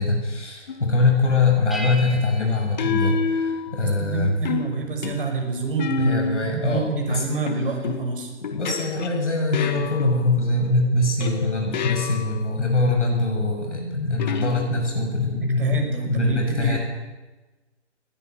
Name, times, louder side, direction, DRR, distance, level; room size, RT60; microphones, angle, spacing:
voice 1, 0.0-4.3 6.0-7.4 8.5-16.8, left 3 dB, 75° left, 1 dB, 6.7 m, -23 dB
sound 1, 0.7-1.0 2.8-4.0 4.4-6.6 7.5-10.5 11.2-12.5 14.2-15.1, left 6 dB, 40° left, 1.7 m, -30 dB
sound 2, 1.7-3.9, equal, ahead, 1.4 m, -38 dB
voice 2, 4.0-6.1 6.5-8.3 15.4-16.8, right 4 dB, 50° right, 3 dB, 6.1 m, -27 dB
19.5 x 16.5 x 9.1 m, 1.2 s
figure-of-eight pair, 150°, 35 cm